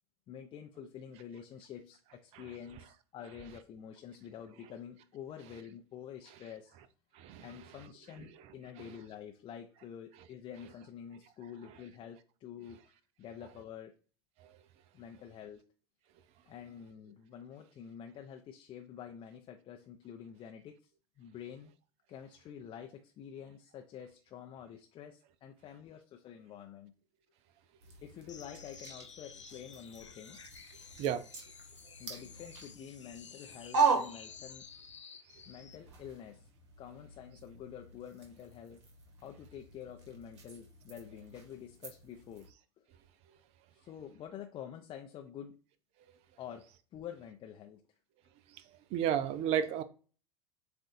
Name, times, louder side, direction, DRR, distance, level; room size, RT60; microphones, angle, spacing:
voice 1, 0.3-6.8 7.4-12.8 13.2-13.9 14.9-15.6 16.5-20.9 21.2-21.7 22.1-26.9 28.0-30.4 32.0-34.7 35.5-36.5 36.8-38.9 39.2-42.5 42.8-42.9 43.7-45.6 46.4-47.8, left 9 dB, 35° left, 0.6 m, -48 dB
voice 2, 7.2-7.5 14.4-14.5 31.0-31.2 48.9-49.8, right 9 dB, 45° right, 0.6 m, -31 dB
sound 1, 27.8-35.0 35.3-42.5, right 5 dB, 70° right, 1.4 m, -39 dB
sound 2, 28.3-35.8, left 7 dB, 85° left, 0.5 m, -53 dB
7.6 x 2.5 x 2.6 m
figure-of-eight pair, 85°, 15 cm